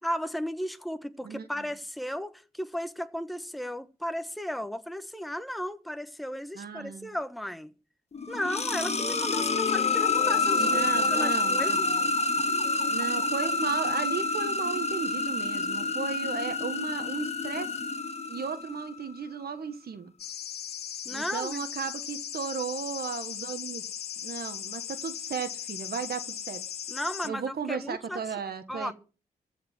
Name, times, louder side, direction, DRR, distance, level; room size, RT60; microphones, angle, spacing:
voice 1, 0.0-7.7 8.3-11.9 21.0-21.6 26.9-28.2 28.7-28.9, equal, ahead, 1.1 m, -35 dB
voice 2, 6.5-7.1 10.6-11.8 12.9-17.7 18.3-20.1 21.1-26.6 27.2-28.9, right 6 dB, 70° right, 1.6 m, -35 dB
sound 1, 8.1-18.9, left 3 dB, 40° left, 1.4 m, -28 dB
sound 2, 20.2-27.3, left 10 dB, 85° left, 0.7 m, -38 dB
14.5 x 5.2 x 9.1 m
cardioid pair, 65°, 16 cm